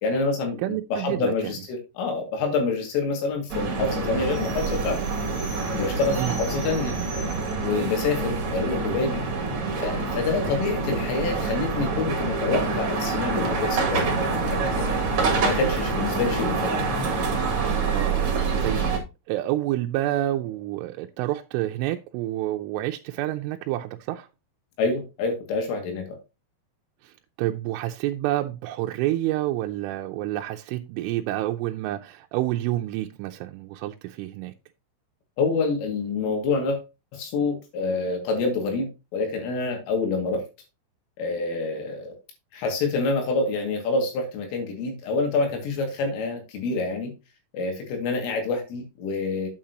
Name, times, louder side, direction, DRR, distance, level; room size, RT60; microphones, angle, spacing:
voice 1, 0.0-5.0 5.7-7.0 7.6-9.2 9.8-15.0 15.4-16.8 24.8-26.0 35.4-36.8 37.1-40.4 41.2-42.2 42.5-47.1 47.5-49.5, left 3 dB, 75° left, 4.7 m, -27 dB
voice 2, 0.6-1.3 6.2-6.4 17.9-18.3 18.6-18.9 19.3-24.3 27.0-27.1 27.4-34.5, right 15 dB, 85° right, 3.0 m, -28 dB
sound 1, 3.5-19.0, right 4 dB, 45° right, 2.7 m, -26 dB
8.8 x 8.7 x 2.9 m
omnidirectional pair, 5.9 m